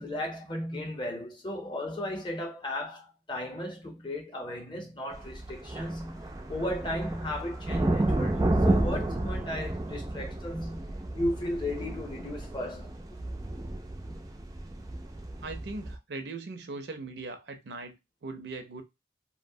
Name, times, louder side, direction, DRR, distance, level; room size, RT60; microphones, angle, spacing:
voice 1, 0.0-13.0 14.1-14.2, left 1 dB, 25° left, 0.6 m, -35 dB
sound 1, 5.1-16.0, right 1 dB, 20° right, 0.3 m, -31 dB
voice 2, 15.4-18.8, right 3 dB, 70° right, 0.5 m, -40 dB
2.6 x 2.0 x 2.6 m
head